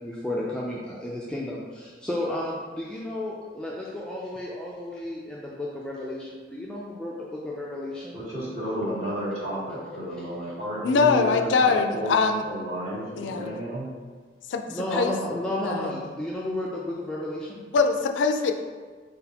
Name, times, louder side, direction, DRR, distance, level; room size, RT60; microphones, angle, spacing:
voice 1, 0.0-8.2 10.2-10.3 14.7-17.6, left 1 dB, 5° left, -5 dB, 0.4 m, -32 dB
voice 2, 8.1-11.3 11.6-12.2 12.4-13.9, equal, 35° right, -8 dB, 1.4 m, -32 dB
voice 3, 10.8-12.4 13.2-13.6 14.5-15.1 15.6-16.0 17.7-18.5, left 4 dB, 85° left, 6 dB, 0.4 m, -23 dB
4.0 x 4.0 x 2.8 m, 1.5 s
head